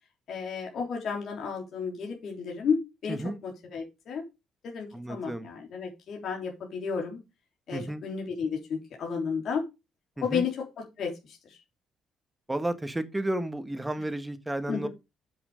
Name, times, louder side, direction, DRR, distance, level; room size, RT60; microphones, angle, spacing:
voice 1, 0.3-4.2 4.6-7.2 7.7-9.6 10.2-10.5 11.0-11.6 14.7-14.9, left 6 dB, 60° left, 3.7 m, -32 dB
voice 2, 3.1-3.4 4.9-5.5 7.7-8.0 10.2-10.4 12.5-14.9, right 1 dB, 10° right, 1.4 m, -32 dB
8.5 x 7.9 x 5.0 m
cardioid pair, 115°, 0 cm